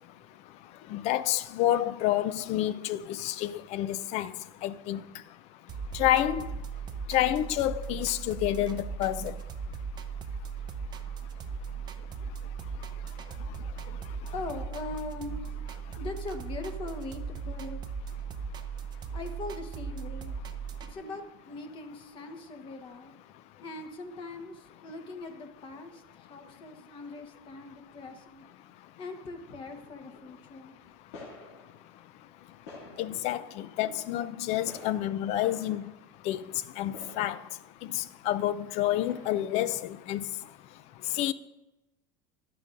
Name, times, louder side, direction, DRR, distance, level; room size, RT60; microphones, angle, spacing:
voice 1, 0.9-4.3 4.6-5.0 5.9-6.5 7.1-9.3 33.0-35.9 36.2-36.5 36.8-37.4 37.8-40.2 41.1-41.3, left 13 dB, 50° left, 0.5 m, -29 dB
sound 1, 5.7-20.9, right 6 dB, 30° right, 0.6 m, -38 dB
voice 2, 14.2-15.6 15.9-17.8 19.1-20.3 20.9-23.1 23.6-28.4 29.0-30.8, left 3 dB, 35° left, 1.2 m, -41 dB
sound 2, 29.5-30.4 31.1-31.8 32.4-33.4 33.8-34.0 34.6-36.0 36.9-38.3 39.0-39.8, left 3 dB, 85° left, 2.4 m, -49 dB
12.0 x 10.0 x 2.5 m
supercardioid pair, 115°, 14 cm